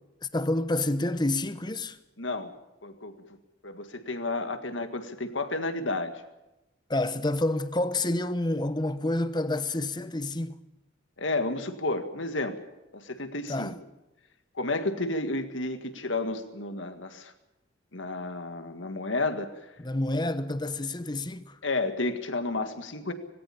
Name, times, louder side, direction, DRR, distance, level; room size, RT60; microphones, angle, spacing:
voice 1, 0.3-2.0 6.9-10.6 13.5-13.8 19.8-21.6, left 2 dB, 20° left, 0.9 m, -28 dB
voice 2, 2.2-2.5 2.8-3.2 3.6-6.1 11.2-12.6 12.9-13.8 14.6-17.3 17.9-19.5 21.6-23.1, left 2 dB, 70° left, 1.9 m, -31 dB
19.5 x 17.5 x 8.6 m
head